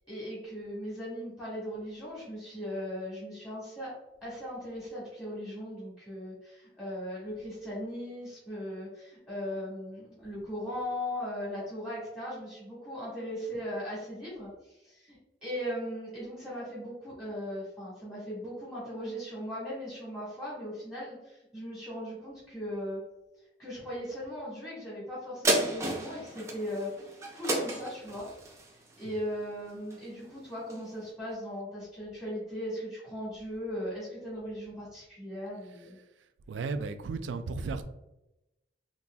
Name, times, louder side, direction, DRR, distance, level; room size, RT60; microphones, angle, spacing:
voice 1, 0.1-3.9 4.2-23.0 23.6-26.9 27.3-28.3 29.0-36.0, equal, 15° left, 1.3 m, -38 dB
sound 1, 25.4-30.2 30.7-30.8, right 1 dB, 15° right, 0.5 m, -32 dB
voice 2, 36.5-37.8, right 4 dB, 90° right, 0.3 m, -34 dB
4.1 x 2.7 x 2.3 m
head